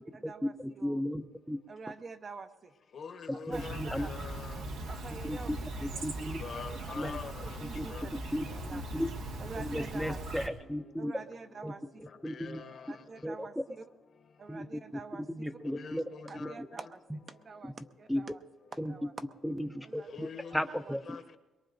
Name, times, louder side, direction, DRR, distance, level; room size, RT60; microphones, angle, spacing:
voice 1, 0.1-1.0 1.7-2.7 3.3-4.1 4.9-5.5 5.9-6.0 6.7-7.1 7.4-8.1 8.5-8.8 9.4-10.2 11.0-12.1 12.9-13.8 14.4-15.3 16.3-17.0 17.3-18.4 18.7-19.2 19.8-21.0, right 4 dB, 40° right, 0.8 m, -47 dB
voice 2, 0.8-1.6 3.5-4.1 5.3-5.4 6.0-6.4 7.0-7.2 7.7-7.8 8.3-8.4 8.7-9.1 9.6-11.1 11.6-11.7 12.2-12.6 13.2-13.3 14.5-14.7 15.3-16.1 16.4-16.5 18.1-18.2 18.8-18.9 19.4-20.3 20.5-21.0, equal, ahead, 0.6 m, -34 dB
voice 3, 2.9-4.5 6.4-7.4 7.9-8.0 12.2-12.9 15.7-16.6 20.1-20.6 21.1-21.4, left 6 dB, 55° left, 1.1 m, -44 dB
Chirp tweet, 3.5-10.5, right 1 dB, 85° right, 1.6 m, -40 dB
22.5 x 22.0 x 2.6 m
cardioid pair, 90°, 0 cm